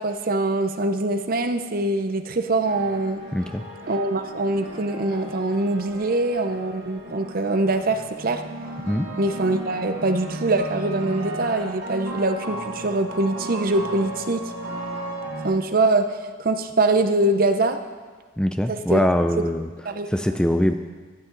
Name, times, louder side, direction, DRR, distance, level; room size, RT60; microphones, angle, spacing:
voice 1, 0.0-3.2 3.9-8.4 9.2-14.4 15.4-16.1 16.4-17.8 18.7-19.1 19.4-19.5 19.8-20.4, right 2 dB, 50° right, 8 dB, 0.7 m, -23 dB
sound 1, 2.6-15.5, right 1 dB, 80° right, 2.0 m, -35 dB
voice 2, 3.3-3.6 8.8-9.1 18.4-19.7 20.1-20.7, equal, 5° left, 7 dB, 0.4 m, -22 dB
14.5 x 9.9 x 3.9 m, 1.5 s
head